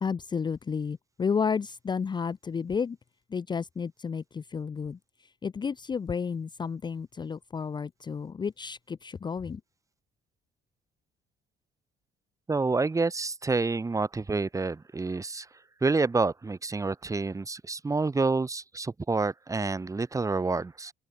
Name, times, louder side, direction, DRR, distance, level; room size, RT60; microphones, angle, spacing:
voice 1, 0.0-3.0 3.3-5.0 5.4-9.6, left 6 dB, 25° left, 0.7 m, -31 dB
voice 2, 12.5-15.5 15.8-20.9, right 3 dB, 20° right, 2.0 m, -28 dB
open air
cardioid pair, 110°, 17 cm